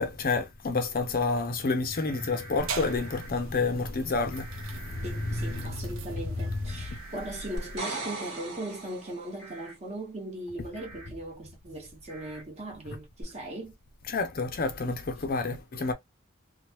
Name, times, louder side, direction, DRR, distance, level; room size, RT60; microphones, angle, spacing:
voice 1, 0.0-5.8 6.7-6.8 14.1-15.9, left 3 dB, 45° left, 0.5 m, -29 dB
sound 1, 1.9-3.3 4.3-5.7 6.7-8.0 9.4-9.7 10.7-11.1 12.1-12.4, right 3 dB, 5° left, 1.0 m, -47 dB
sound 2, 2.6-7.8, right 3 dB, 75° right, 0.6 m, -40 dB
voice 2, 5.0-13.7, right 1 dB, 35° right, 1.3 m, -39 dB
sound 3, 7.6-9.5 13.2-13.3, right 3 dB, 55° right, 1.6 m, -37 dB
3.0 x 2.2 x 3.0 m
head